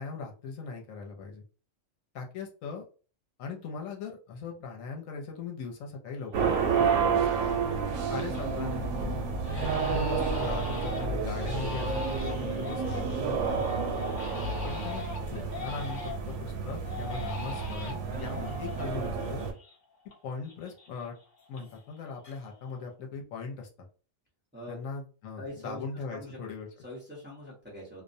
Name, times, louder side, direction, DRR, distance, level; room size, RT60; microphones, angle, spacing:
voice 1, 0.0-1.4 2.1-2.9 3.4-7.6 8.1-9.2 9.8-14.0 14.6-19.4 20.2-21.2 21.5-23.9 24.7-26.7, left 5 dB, 75° left, 1 dB, 1.0 m, -39 dB
Crying sobbing, 6.3-6.4 6.8-7.3 7.7-8.5 8.8-9.0 9.4-16.4 16.8-20.2 20.4-22.0 22.2-22.8, left 2 dB, 45° left, 0.6 m, -41 dB
sound 1, 6.3-19.5, right 5 dB, 80° right, 1.0 m, -30 dB
voice 2, 25.4-25.8 26.1-26.4 26.8-28.0, left 1 dB, 10° right, -5 dB, 0.7 m, -43 dB
2.4 x 2.0 x 2.5 m, 0.37 s
omnidirectional pair, 1.4 m